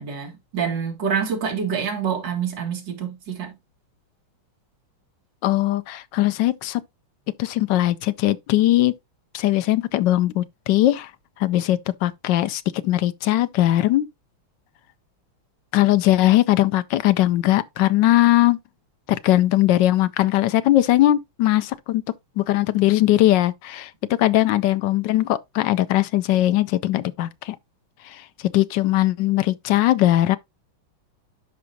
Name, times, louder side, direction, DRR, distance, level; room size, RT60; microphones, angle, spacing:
voice 1, 0.0-3.5, right 7 dB, 60° right, 2.5 m, -26 dB
voice 2, 5.4-6.8 7.4-8.9 9.3-11.1 11.4-14.1 15.7-18.6 19.1-22.0 22.4-23.9 24.2-27.6 28.1-28.2 28.5-30.4, left 15 dB, 70° left, 1.2 m, -20 dB
11.0 x 4.8 x 2.7 m
omnidirectional pair, 2.2 m